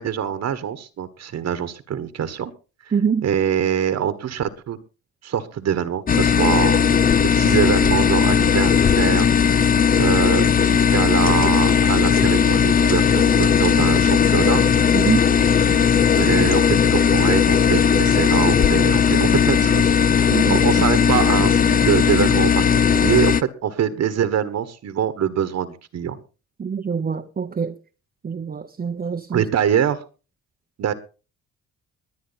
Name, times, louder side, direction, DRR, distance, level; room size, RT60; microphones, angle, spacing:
voice 1, 0.0-2.5 3.2-4.8 5.2-6.8 7.3-9.3 10.0-14.6 16.2-26.2 29.3-30.0 30.8-30.9, right 9 dB, 60° right, 1.5 m, -24 dB
voice 2, 2.9-3.3 14.9-15.2 20.3-20.6 26.6-27.7 28.2-29.4, right 6 dB, 30° right, 0.8 m, -24 dB
sound 1, 6.1-23.4, left 7 dB, 30° left, 0.6 m, -17 dB
21.0 x 9.3 x 4.1 m
cardioid pair, 90°, 30 cm